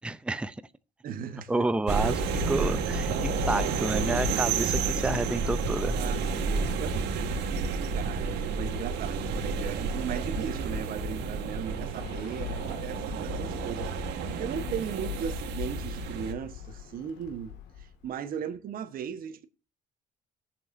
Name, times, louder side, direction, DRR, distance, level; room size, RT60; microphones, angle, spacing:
voice 1, 0.0-0.6 1.5-6.0, right 2 dB, 5° right, 0.6 m, -30 dB
voice 2, 1.0-1.6 5.9-7.6 7.9-19.5, right 8 dB, 60° right, 1.3 m, -37 dB
sound 1, 1.9-16.3, right 4 dB, 85° right, 2.0 m, -30 dB
Bird, 11.9-18.1, left 9 dB, 85° left, 2.2 m, -45 dB
20.0 x 7.2 x 2.7 m
cardioid pair, 110°, 17 cm